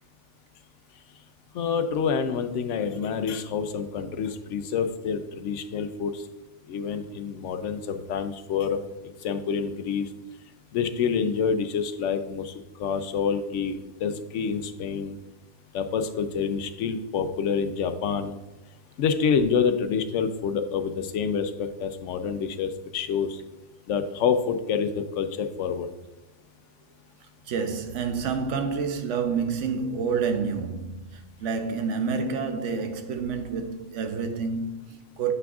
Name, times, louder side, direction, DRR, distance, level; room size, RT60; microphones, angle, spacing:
voice 1, 1.5-6.2 6.7-8.8 9.0-10.1 10.7-15.2 15.7-18.3 19.0-23.4 23.9-25.9, left 6 dB, 85° left, 0.9 m, -27 dB
voice 2, 27.5-35.3, right 5 dB, 85° right, 1.0 m, -29 dB
7.8 x 5.9 x 2.4 m
omnidirectional pair, 1.2 m